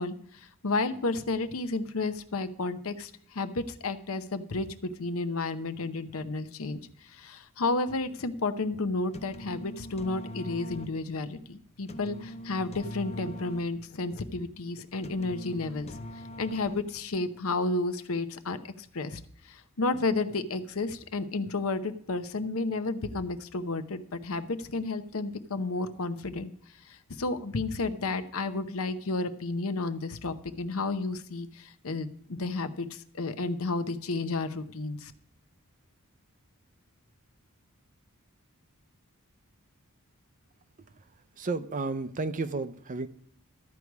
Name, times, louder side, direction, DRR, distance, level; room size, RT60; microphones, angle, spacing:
voice 1, 0.0-16.0 16.4-18.6 18.9-26.5 26.8-35.1, left 3 dB, 65° left, 11 dB, 0.8 m, -32 dB
sound 1, 8.9-17.2, left 1 dB, 30° left, 0.6 m, -43 dB
voice 2, 41.4-43.1, right 3 dB, 35° right, 12 dB, 0.6 m, -32 dB
13.0 x 4.7 x 8.2 m, 0.63 s
head